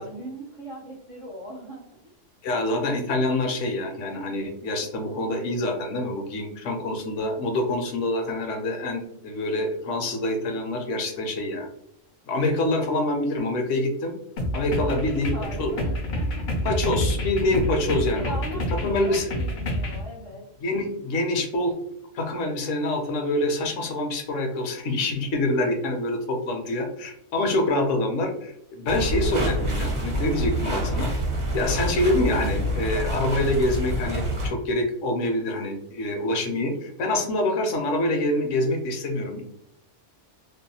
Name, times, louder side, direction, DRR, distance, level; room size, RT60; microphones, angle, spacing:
voice 1, 0.0-2.1 14.8-16.9 18.1-20.4, equal, 65° right, -4 dB, 0.3 m, -39 dB
voice 2, 2.4-11.7 12.3-14.1 14.5-15.7 16.6-18.2 18.8-19.3 20.6-21.8 22.1-31.1 31.5-39.4, left 1 dB, 75° left, 3 dB, 0.9 m, -26 dB
sound 1, 14.4-20.0, left 1 dB, 60° left, 0.5 m, -28 dB
sound 2, 28.9-34.5, equal, 45° right, 0.9 m, -27 dB
2.6 x 2.1 x 2.6 m, 0.73 s
omnidirectional pair, 1.3 m